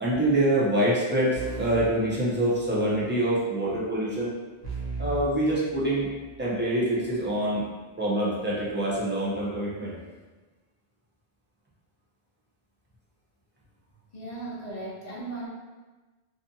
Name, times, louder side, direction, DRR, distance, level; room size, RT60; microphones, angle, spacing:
voice 1, 0.0-4.3 5.0-6.1 6.4-7.6 8.0-10.0, right 1 dB, 15° right, -6 dB, 0.4 m, -25 dB
sound 1, 1.3-2.9 4.6-6.4, right 3 dB, 45° right, 0.8 m, -37 dB
voice 2, 14.1-15.5, right 2 dB, 50° left, -4 dB, 0.6 m, -37 dB
2.6 x 2.4 x 2.6 m, 1.3 s
omnidirectional pair, 1.0 m